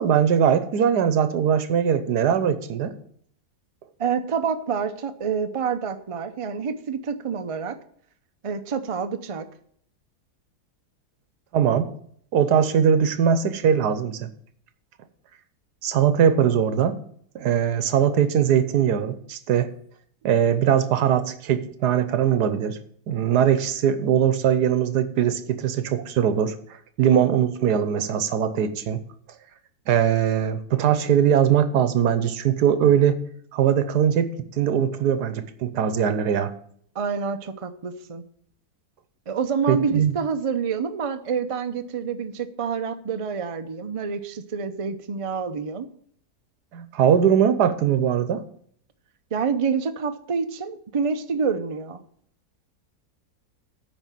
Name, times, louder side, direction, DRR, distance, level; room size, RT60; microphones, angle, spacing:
voice 1, 0.0-2.9 11.5-11.9 12.3-14.3 15.8-17.0 17.3-19.7 20.2-22.8 23.1-26.5 27.0-29.0 29.9-33.2 33.5-36.5 39.7-40.1 46.7-48.4, right 8 dB, 80° right, 11 dB, 1.4 m, -21 dB
voice 2, 4.0-7.8 8.4-9.5 36.9-38.2 39.3-45.9 49.3-52.0, right 6 dB, 50° right, 8 dB, 0.4 m, -27 dB
9.1 x 5.2 x 7.5 m, 0.62 s
omnidirectional pair, 1.7 m